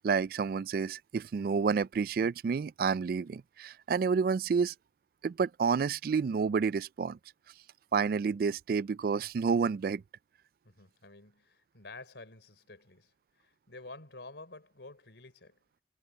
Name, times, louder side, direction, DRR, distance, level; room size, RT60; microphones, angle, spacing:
voice 1, 0.0-4.7 5.2-7.2 7.9-10.0, right 5 dB, 55° right, 0.3 m, -29 dB
voice 2, 10.6-15.6, left 3 dB, 85° left, 3.7 m, -50 dB
head